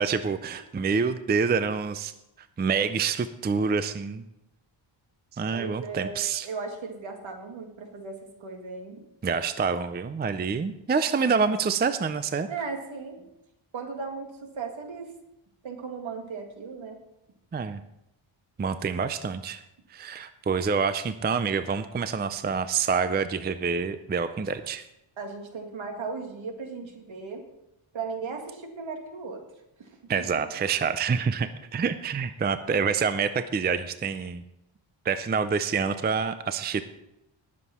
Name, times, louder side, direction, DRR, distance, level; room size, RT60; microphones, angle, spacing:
voice 1, 0.0-2.1 2.6-4.2 5.4-6.5 9.2-12.5 17.5-17.8 18.6-19.6 19.9-24.8 30.1-34.4 35.0-36.8, right 5 dB, 20° right, 11 dB, 0.4 m, -27 dB
voice 2, 5.5-9.0 12.5-13.2 13.7-15.2 15.6-17.0 25.2-27.4 27.9-29.4 29.8-30.4, right 4 dB, 65° right, 3 dB, 2.3 m, -37 dB
19.0 x 7.5 x 4.3 m, 0.88 s
wide cardioid pair, 160°, 50 cm